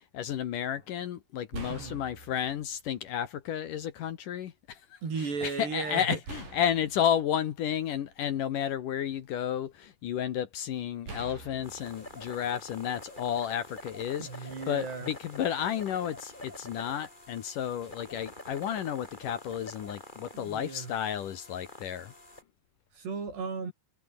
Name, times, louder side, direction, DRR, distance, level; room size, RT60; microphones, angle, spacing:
voice 1, 0.0-4.8 5.4-14.3 14.7-22.1, left 9 dB, 65° left, 2.5 m, -32 dB
sound 1, 0.7-0.9 1.5-2.8 3.7-3.8 6.3-8.4 9.0-9.9 11.1-13.1, right 3 dB, 55° right, 9.2 m, -46 dB
voice 2, 5.0-6.2 14.2-15.1 20.3-20.9 23.0-23.7, right 5 dB, 80° right, 9.1 m, -35 dB
sound 2, 11.6-22.4, left 1 dB, 10° left, 5.2 m, -47 dB
omnidirectional pair, 4.7 m